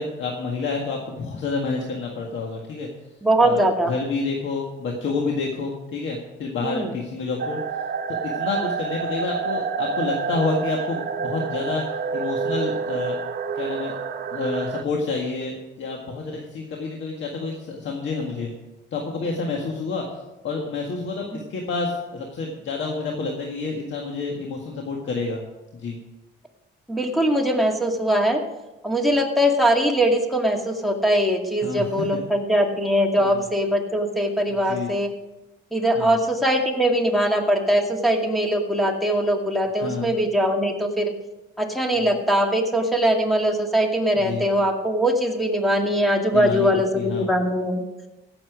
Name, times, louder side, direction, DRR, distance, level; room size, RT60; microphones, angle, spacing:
voice 1, 0.0-2.9 3.4-7.6 8.1-11.9 12.1-13.2 13.5-13.9 14.3-18.5 18.9-20.1 20.4-25.4 25.7-26.0 31.6-31.9 33.2-33.5 34.5-34.9 35.9-36.2 39.8-40.1 41.9-42.1 44.1-44.4 46.3-46.7 46.9-47.3, left 4 dB, 70° left, 0 dB, 1.8 m, -29 dB
voice 2, 3.2-3.9 6.6-6.9 26.9-28.4 28.8-35.1 35.7-41.1 41.6-47.8, equal, ahead, 2 dB, 2.2 m, -21 dB
sound 1, 7.4-14.8, right 5 dB, 55° right, 1.1 m, -28 dB
16.5 x 7.1 x 5.0 m, 1.0 s
cardioid pair, 90°, 20 cm